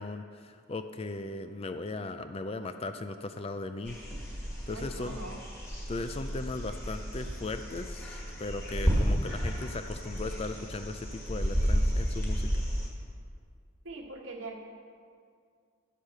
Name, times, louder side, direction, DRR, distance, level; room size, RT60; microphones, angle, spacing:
voice 1, 0.0-4.0 4.7-5.2 5.9-12.6, left 3 dB, 25° left, 9 dB, 0.4 m, -37 dB
sound 1, 3.8-12.9, equal, 10° left, 1.7 m, -32 dB
voice 2, 4.7-5.4 13.8-14.6, right 2 dB, 65° right, 1 dB, 1.5 m, -42 dB
10.5 x 8.4 x 6.5 m, 2.2 s
head